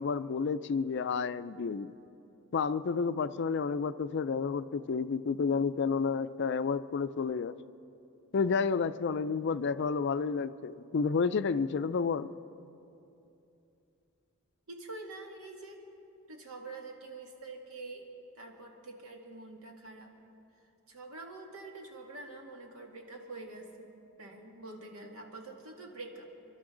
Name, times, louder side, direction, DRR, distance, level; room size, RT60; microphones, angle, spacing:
voice 1, 0.0-1.9 2.5-7.6 8.3-12.3, left 5 dB, 55° left, 13 dB, 0.4 m, -30 dB
voice 2, 14.7-15.8 16.3-18.1 18.4-20.1 20.9-23.9 24.2-26.3, right 2 dB, 80° right, 1 dB, 2.1 m, -46 dB
30.0 x 12.0 x 3.8 m, 2.8 s
head